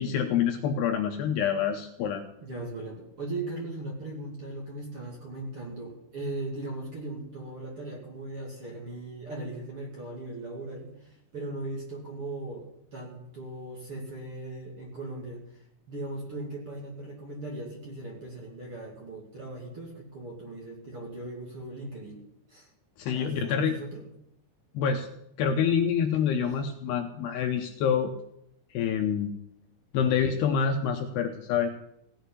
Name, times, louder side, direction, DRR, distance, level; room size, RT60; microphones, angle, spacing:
voice 1, 0.0-2.2 23.0-23.7 24.7-25.1 25.4-28.1 28.7-29.3 29.9-31.7, left 7 dB, 75° left, 5 dB, 2.6 m, -26 dB
voice 2, 2.4-15.4 15.9-22.2 22.5-22.7 23.1-24.0, right 2 dB, 35° right, -2 dB, 2.7 m, -38 dB
16.5 x 6.5 x 9.7 m, 0.76 s
omnidirectional pair, 5.4 m